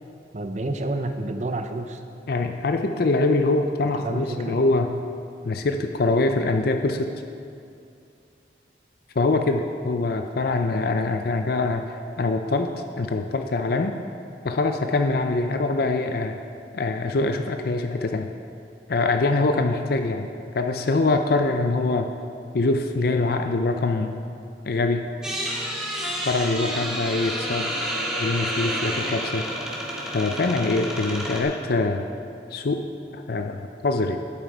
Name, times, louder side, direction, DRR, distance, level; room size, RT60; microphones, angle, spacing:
voice 1, 0.3-2.0 4.0-4.6, right 2 dB, 40° right, 7 dB, 0.6 m, -29 dB
voice 2, 2.3-5.0 5.4-7.1 9.2-12.7 13.0-13.9 14.4-16.4 16.7-18.3 18.9-20.3 20.5-22.1 22.5-24.2 24.6-25.1 26.2-27.8 28.2-29.5 30.1-32.1 32.5-32.9 33.1-34.2, left 3 dB, 60° left, 6 dB, 0.5 m, -24 dB
sound 1, 25.2-31.4, equal, 5° right, 1.8 m, -29 dB
11.0 x 8.5 x 4.6 m, 2.5 s
head